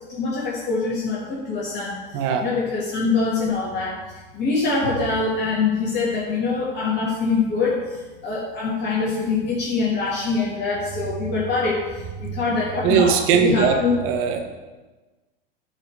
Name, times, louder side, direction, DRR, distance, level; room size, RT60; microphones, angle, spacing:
voice 1, 0.1-14.0, left 4 dB, 35° left, -6 dB, 2.6 m, -24 dB
voice 2, 2.1-2.5 12.8-13.8 14.0-14.4, right 7 dB, 50° right, 4 dB, 1.6 m, -19 dB
10.0 x 4.9 x 6.6 m, 1.2 s
hypercardioid pair, 95°, 29 cm